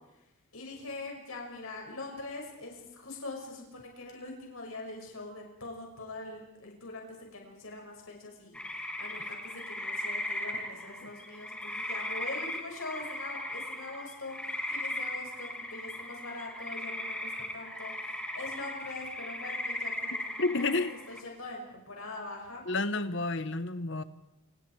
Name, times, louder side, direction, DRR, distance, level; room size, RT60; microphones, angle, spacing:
voice 1, 0.5-20.7 21.1-22.7, left 2 dB, 75° left, 6.2 m, -43 dB
sound 1, 8.5-21.2, left 1 dB, 5° left, 2.3 m, -38 dB
voice 2, 20.4-20.9 22.7-24.0, left 3 dB, 55° left, 1.2 m, -30 dB
28.0 x 27.5 x 4.8 m
head